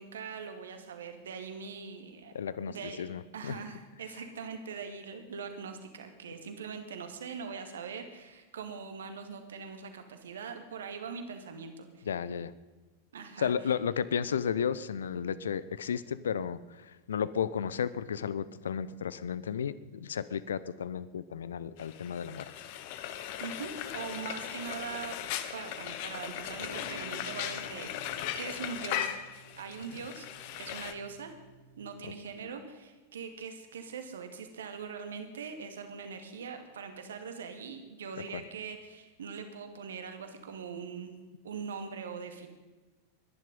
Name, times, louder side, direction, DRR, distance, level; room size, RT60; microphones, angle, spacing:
voice 1, 0.0-2.3 2.7-3.1 3.3-12.1 13.1-13.5 23.4-25.2 25.5-28.1 28.3-29.2 29.6-30.3 30.6-31.3 31.8-41.1 41.4-42.5, right 6 dB, 65° right, 7 dB, 2.1 m, -42 dB
voice 2, 2.3-3.6 12.1-12.5 13.4-22.5 38.3-38.4, left 7 dB, 65° left, 17 dB, 0.7 m, -33 dB
Frying (food), 21.8-30.9, left 11 dB, 45° left, 1.2 m, -38 dB
sound 1, 26.3-32.3, right 3 dB, 80° right, 2.1 m, -53 dB
21.5 x 11.0 x 5.4 m, 1.3 s
figure-of-eight pair, 90°, 0 cm